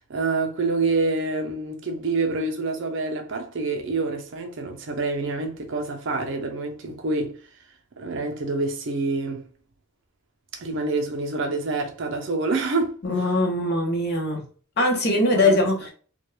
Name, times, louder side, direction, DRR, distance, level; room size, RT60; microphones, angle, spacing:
voice 1, 0.1-7.4 8.0-9.5 10.5-13.0 15.3-15.6, right 3 dB, 55° right, 0.5 m, -27 dB
voice 2, 13.0-14.4 14.8-15.9, left 2 dB, 45° left, 0.7 m, -21 dB
2.3 x 2.2 x 3.1 m
head